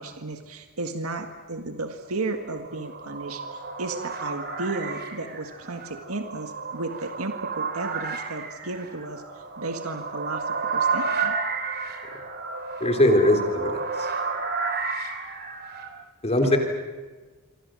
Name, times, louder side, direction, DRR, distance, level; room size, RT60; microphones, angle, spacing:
voice 1, 0.0-11.4 16.4-16.5, right 2 dB, 80° right, 6 dB, 1.8 m, -34 dB
sound 1, 2.5-15.9, right 4 dB, 50° right, 3.3 m, -31 dB
voice 2, 12.8-14.1 16.2-16.6, left 1 dB, 30° left, 4 dB, 3.4 m, -21 dB
27.0 x 25.0 x 7.6 m, 1.3 s
head